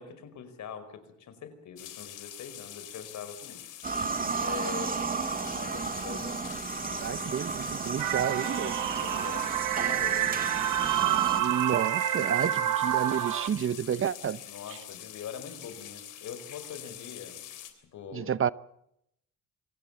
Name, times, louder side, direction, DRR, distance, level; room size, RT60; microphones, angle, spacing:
voice 1, 0.0-3.6 4.4-5.0 5.5-6.4 6.8-7.7 8.6-9.5 9.9-11.2 12.2-12.6 14.4-17.4 17.7-18.5, left 7 dB, 70° left, 5.0 m, -44 dB
sound 1, 1.8-17.7, left 12 dB, 85° left, 3.6 m, -45 dB
sound 2, 3.8-11.4, right 4 dB, 30° right, 1.9 m, -33 dB
voice 2, 7.0-8.7 11.4-14.4 18.1-18.5, right 8 dB, 45° right, 0.9 m, -30 dB
sound 3, 8.0-13.5, right 12 dB, 85° right, 1.8 m, -28 dB
27.5 x 18.0 x 7.3 m
cardioid pair, 90°, 30 cm